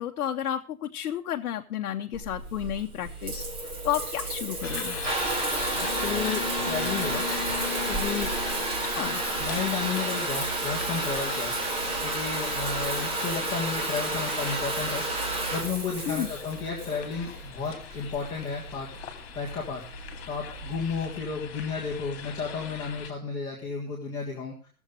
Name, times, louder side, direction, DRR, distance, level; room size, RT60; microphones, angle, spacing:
voice 1, 0.0-3.5 3.8-5.0 8.9-9.2 16.1-16.3, left 10 dB, 75° left, 4 dB, 0.9 m, -31 dB
Water tap faucet / Bathtub (filling or washing) / Trickle dribble, 2.1-21.0, right 2 dB, 25° right, 2.4 m, -31 dB
sound 1, 4.6-23.1, left 8 dB, 40° left, 2.2 m, -41 dB
voice 2, 5.7-7.2 7.8-8.3 9.4-15.0 15.5-19.8 20.3-24.7, left 5 dB, 10° left, -6 dB, 1.4 m, -33 dB
16.5 x 7.2 x 5.0 m, 0.39 s
hypercardioid pair, 175°, 44 cm